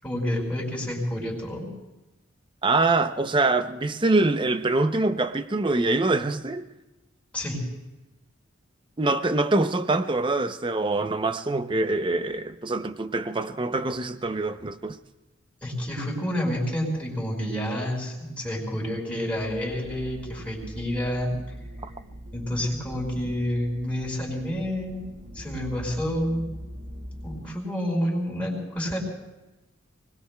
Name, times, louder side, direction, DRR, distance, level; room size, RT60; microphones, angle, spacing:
voice 1, 0.0-1.7 7.3-7.6 15.6-21.3 22.3-25.0 25.3-26.4 27.2-29.0, equal, 5° left, 5.2 m, -29 dB
voice 2, 2.6-6.7 9.0-15.0, right 2 dB, 25° right, 0.6 m, -24 dB
sound 1, 19.4-27.4, equal, 75° right, 1.7 m, -41 dB
30.0 x 21.0 x 2.3 m
head